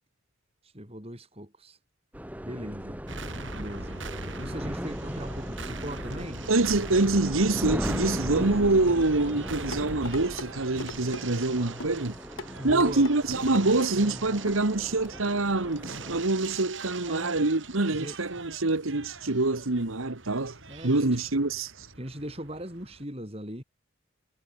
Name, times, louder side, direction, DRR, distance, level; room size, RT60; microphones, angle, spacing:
voice 1, 0.6-1.8 2.4-3.0 3.5-4.0 4.4-6.4 12.4-13.1 17.0-17.4 17.9-18.2 20.7-21.2 22.0-23.6, equal, 30° right, 6.8 m, -39 dB
sound 1, 2.1-16.2, equal, 5° right, 4.1 m, -37 dB
sound 2, 3.1-23.0, right 3 dB, 65° right, 6.9 m, -42 dB
voice 2, 6.5-12.2 12.6-20.6 20.8-21.9, right 2 dB, 90° right, 1.6 m, -25 dB
sound 3, 9.7-10.5 10.8-11.2 11.8-12.0 12.4-13.2 13.5-13.9 14.5-14.6 15.0-15.1, left 2 dB, 85° left, 4.9 m, -38 dB
head